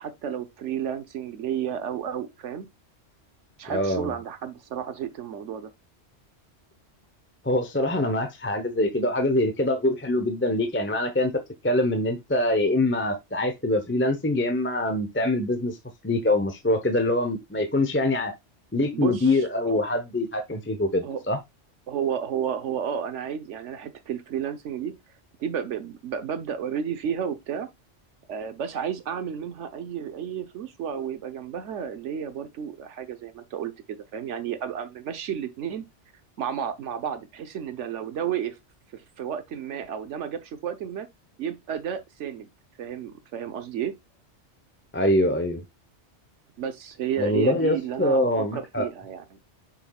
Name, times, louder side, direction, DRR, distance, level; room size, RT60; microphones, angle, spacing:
voice 1, 0.0-2.7 3.6-5.7 18.9-19.8 21.0-21.2 21.9-25.0 25.4-27.7 28.3-35.8 36.4-38.6 38.9-41.1 41.4-42.5 42.8-43.9 46.6-49.4, right 8 dB, 80° right, 1.2 m, -32 dB
voice 2, 3.7-4.2 7.4-11.3 11.6-15.8 16.0-18.3 18.7-21.4 44.9-45.6 47.2-48.9, left 1 dB, 10° left, 0.7 m, -24 dB
7.1 x 5.8 x 2.3 m
omnidirectional pair, 1.2 m